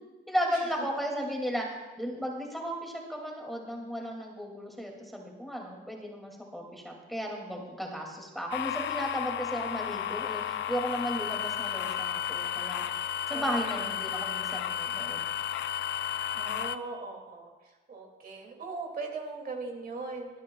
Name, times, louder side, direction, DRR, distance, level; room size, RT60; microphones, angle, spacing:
voice 1, 0.3-15.2, equal, ahead, -1 dB, 2.4 m, -35 dB
sound 1, 8.5-16.8, left 11 dB, 65° left, 0.6 m, -33 dB
voice 2, 13.3-13.7 16.3-17.5 17.9-20.3, right 3 dB, 50° right, 1 dB, 2.4 m, -39 dB
26.5 x 9.5 x 2.3 m, 1.2 s
cardioid pair, 90°, 20 cm